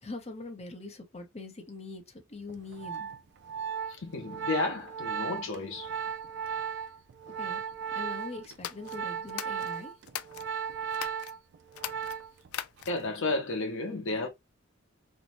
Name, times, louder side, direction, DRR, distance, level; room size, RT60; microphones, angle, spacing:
voice 1, 0.0-3.1 6.6-6.9 7.4-7.6 7.9-9.9, left 3 dB, 30° left, 0.7 m, -43 dB
Organ, 2.5-12.5 12.8-13.1, right 7 dB, 55° right, 0.3 m, -36 dB
voice 2, 3.9-5.9 12.9-14.3, left 3 dB, 65° left, 0.7 m, -32 dB
sound 1, 8.5-10.5 10.9-11.3 11.7-13.1, left 11 dB, 90° left, 0.3 m, -40 dB
2.6 x 2.1 x 2.9 m
head